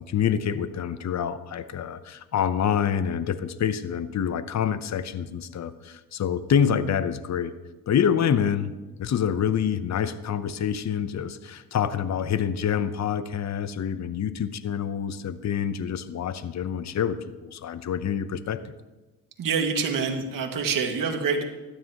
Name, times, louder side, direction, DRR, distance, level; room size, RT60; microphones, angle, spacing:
voice 1, 0.0-7.5 7.9-8.7 9.0-18.7, left 8 dB, 45° left, 12 dB, 0.8 m, -27 dB
voice 2, 19.4-21.4, right 5 dB, 60° right, 4 dB, 2.0 m, -26 dB
16.5 x 12.5 x 3.0 m, 1.2 s
cardioid pair, 80°, 37 cm